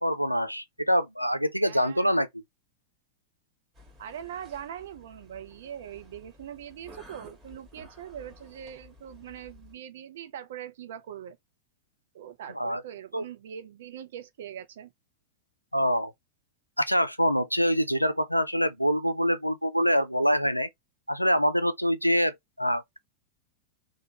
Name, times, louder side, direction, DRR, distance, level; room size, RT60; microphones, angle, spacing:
voice 1, 0.0-2.3 12.6-12.8 13.1-13.2 15.7-16.1 16.8-20.7 21.1-23.0, equal, 90° left, 0.3 m, -25 dB
voice 2, 1.6-2.2 4.0-11.4 12.1-14.9, right 9 dB, 60° right, 0.5 m, -42 dB
sound 1, 3.7-9.7, left 1 dB, 15° right, 1.1 m, -53 dB
3.0 x 2.1 x 2.8 m
figure-of-eight pair, 90°, 0 cm